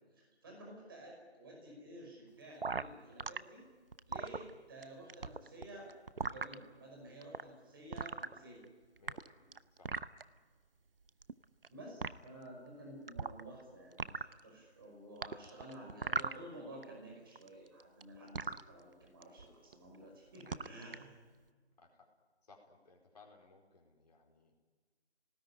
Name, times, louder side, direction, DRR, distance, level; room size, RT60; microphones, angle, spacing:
voice 1, 0.2-3.6 4.1-5.9 6.2-8.6 11.7-21.2, right 1 dB, 20° right, -1 dB, 5.4 m, -52 dB
sound 1, 2.6-3.4 3.9-4.8 5.1-6.5 7.2-7.4 7.9-8.6 9.0-10.2 11.1-11.7 12.0-12.1 13.1-13.6 13.9-14.4 15.2-16.8 17.1-18.6 19.2-19.4 19.7-20.0 20.3-21.0, right 4 dB, 60° right, 0.9 m, -39 dB
voice 2, 9.0-9.9 21.8-22.1 22.4-24.6, left 3 dB, 40° left, 1 dB, 4.5 m, -62 dB
30.0 x 19.0 x 10.0 m, 1.5 s
figure-of-eight pair, 175°, 33 cm